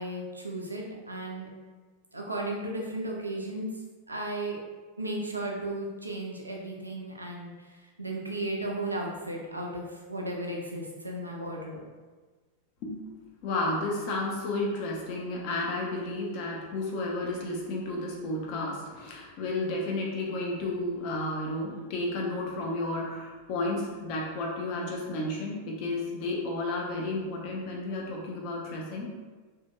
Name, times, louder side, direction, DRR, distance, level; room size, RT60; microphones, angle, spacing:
voice 1, 0.0-1.5 2.1-3.7 4.1-4.6 5.0-11.9, right 1 dB, 80° right, -1 dB, 0.5 m, -35 dB
voice 2, 13.4-29.1, left 2 dB, 45° left, -2 dB, 0.7 m, -32 dB
3.2 x 2.7 x 2.2 m, 1.4 s
figure-of-eight pair, 90°, 0 cm